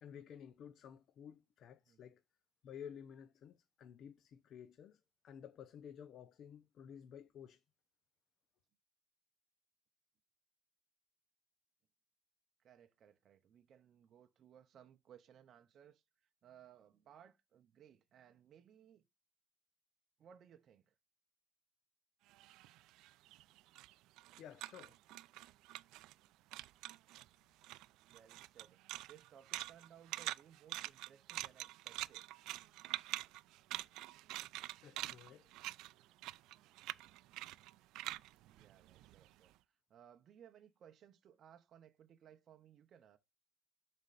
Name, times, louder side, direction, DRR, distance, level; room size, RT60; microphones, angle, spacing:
voice 1, 0.0-2.2 2.6-7.6 24.4-25.0 34.8-35.5, left 8 dB, 50° left, 0.5 m, -53 dB
voice 2, 12.6-19.0 20.2-20.9 28.0-28.8 29.1-32.3 38.4-43.2, right 9 dB, 40° right, 0.6 m, -62 dB
sound 1, 22.3-26.3 26.5-27.3 27.6-39.4, right 17 dB, 90° right, 0.3 m, -46 dB
11.5 x 4.2 x 2.4 m
cardioid pair, 170°, 0 cm